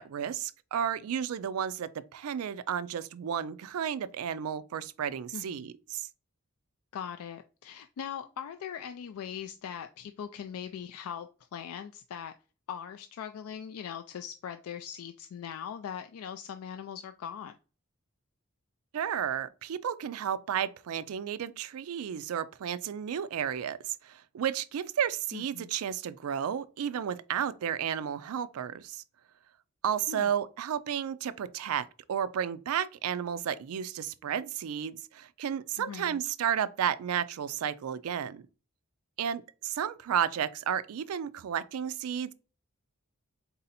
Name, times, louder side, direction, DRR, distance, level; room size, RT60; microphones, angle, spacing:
voice 1, 0.0-6.1 18.9-29.0 29.8-38.4 39.2-42.3, right 8 dB, 80° right, 0.3 m, -32 dB
voice 2, 5.3-5.7 6.9-12.3 12.7-17.6 25.3-25.7 30.1-30.3 35.8-36.2, left 8 dB, 80° left, 0.3 m, -40 dB
4.1 x 2.7 x 4.0 m
head